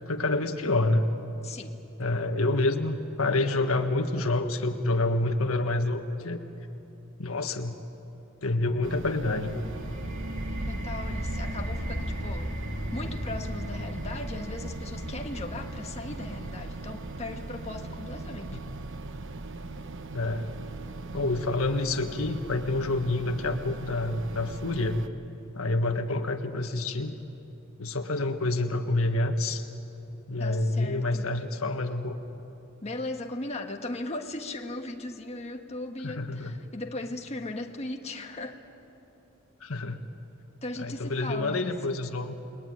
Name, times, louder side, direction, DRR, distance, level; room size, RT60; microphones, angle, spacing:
voice 1, 0.1-1.1 2.0-6.4 7.2-7.8 8.4-9.6 20.1-20.5 21.1-25.0 25.5-27.1 27.8-29.6 30.3-32.2 36.0-36.6 39.6-40.0 40.8-42.4, left 2 dB, 90° left, 6 dB, 1.6 m, -28 dB
voice 2, 1.4-1.8 10.7-12.5 12.9-18.6 30.4-31.3 32.8-38.6 40.6-41.7, left 2 dB, 30° left, 3 dB, 1.5 m, -38 dB
sound 1, 8.8-25.1, right 3 dB, 60° right, 0.9 m, -40 dB
sound 2, 9.5-20.9, equal, 40° right, 3.6 m, -37 dB
30.0 x 21.0 x 9.4 m, 2.9 s
head